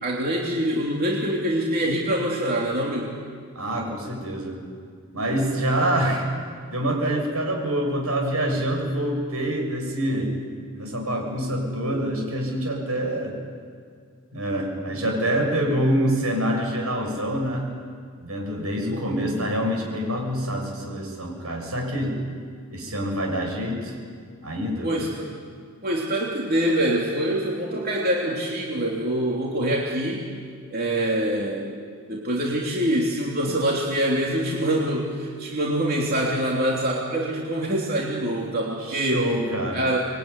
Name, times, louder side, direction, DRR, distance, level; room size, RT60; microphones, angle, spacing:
voice 1, 0.0-3.1 18.9-19.0 24.8-25.3 25.8-30.2 30.7-31.8 32.1-39.3 39.7-40.0, right 1 dB, 45° right, -3 dB, 3.1 m, -25 dB
voice 2, 3.6-4.6 5.1-6.3 6.7-10.3 10.7-13.4 14.3-17.7 18.2-22.2 22.7-23.9 24.4-24.9 38.8-39.8, right 1 dB, 80° right, 2 dB, 7.0 m, -26 dB
26.0 x 22.5 x 9.8 m, 2.1 s
head